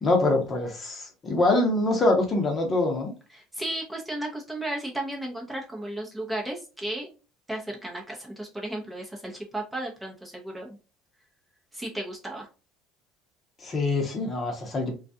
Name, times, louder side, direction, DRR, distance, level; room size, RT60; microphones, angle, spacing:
voice 1, 0.0-3.1 13.6-15.0, left 2 dB, 30° left, 0.9 m, -24 dB
voice 2, 3.3-7.2 7.5-10.8 11.7-12.5, right 1 dB, 10° right, 0.7 m, -34 dB
2.3 x 2.3 x 2.6 m
supercardioid pair, 105°, 0 cm